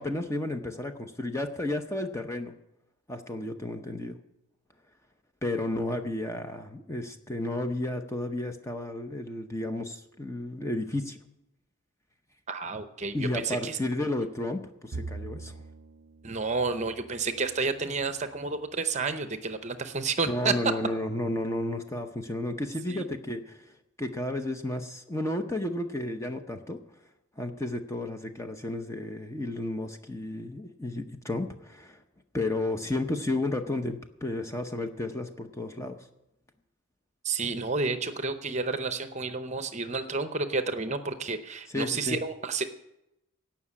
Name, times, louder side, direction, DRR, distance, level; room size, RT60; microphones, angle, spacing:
voice 1, 0.0-2.5 3.1-4.2 5.4-11.2 13.1-15.6 20.3-23.6 24.0-26.8 27.4-32.0 32.3-36.0 41.7-42.2, left 1 dB, 15° left, 6 dB, 0.7 m, -32 dB
voice 2, 12.5-13.8 16.2-20.5 22.9-23.0 37.2-42.6, right 4 dB, 30° right, 9 dB, 0.7 m, -30 dB
Bowed string instrument, 14.9-18.4, right 3 dB, 65° right, 0.5 m, -43 dB
17.0 x 5.9 x 8.5 m, 0.89 s
head